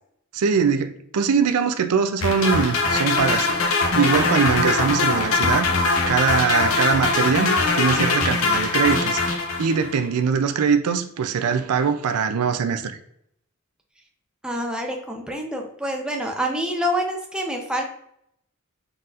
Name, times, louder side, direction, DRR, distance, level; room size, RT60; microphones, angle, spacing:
voice 1, 0.3-3.7 3.9-5.7 6.1-13.0, right 6 dB, 80° right, 0.4 m, -22 dB
sound 1, 2.2-10.0, left 3 dB, 65° left, 0.8 m, -21 dB
voice 2, 14.4-17.8, equal, 5° right, 0.5 m, -27 dB
4.1 x 4.0 x 2.4 m
head